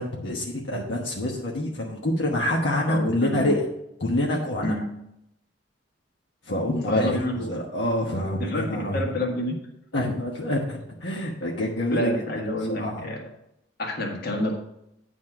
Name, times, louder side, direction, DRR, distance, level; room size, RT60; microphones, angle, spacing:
voice 1, 0.0-3.6 4.0-4.8 6.4-9.0 9.9-13.1, left 1 dB, 80° left, -2 dB, 1.2 m, -27 dB
voice 2, 2.9-3.5 4.6-4.8 6.9-7.5 8.4-9.6 11.9-13.2 13.8-14.6, left 1 dB, 60° left, 1 dB, 1.7 m, -28 dB
9.4 x 4.2 x 6.0 m, 0.80 s
head